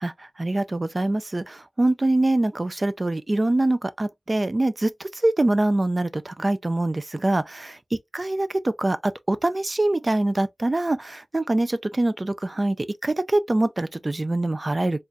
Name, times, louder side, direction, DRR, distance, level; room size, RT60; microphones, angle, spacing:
voice 1, 0.0-7.8 8.1-15.0, right 2 dB, 40° right, 0.4 m, -24 dB
4.1 x 2.5 x 2.6 m
wide cardioid pair, 75°, 0 cm